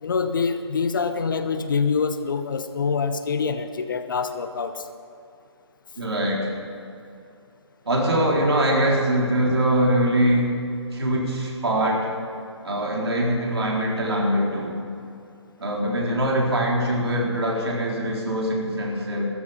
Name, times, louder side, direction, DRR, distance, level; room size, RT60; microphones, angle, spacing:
voice 1, 0.0-4.9, left 5 dB, 45° left, 10 dB, 0.9 m, -25 dB
voice 2, 6.0-6.5 7.9-10.6 10.9-12.1 12.6-14.8 15.6-19.3, right 1 dB, 60° right, -2 dB, 4.0 m, -23 dB
15.0 x 13.5 x 5.8 m, 2.6 s
figure-of-eight pair, 140°, 15 cm